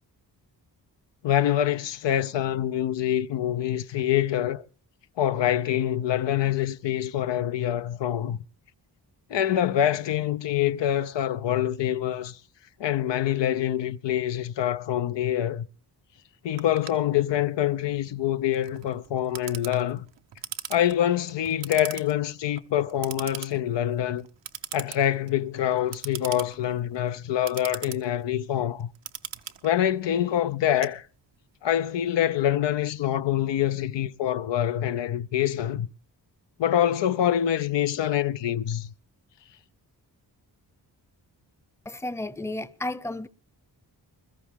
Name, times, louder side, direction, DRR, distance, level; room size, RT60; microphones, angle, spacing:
voice 1, 1.2-4.6 5.2-8.4 9.3-12.4 12.8-15.6 16.4-20.1 20.7-24.3 24.7-28.9 29.6-31.1 31.6-35.9 36.6-38.9, left 11 dB, 85° left, 0.7 m, -25 dB
Clock, 16.6-31.5, right 10 dB, 85° right, 1.0 m, -41 dB
voice 2, 41.9-43.3, left 2 dB, 5° left, 0.7 m, -32 dB
21.5 x 14.0 x 3.5 m
cardioid pair, 70°, 42 cm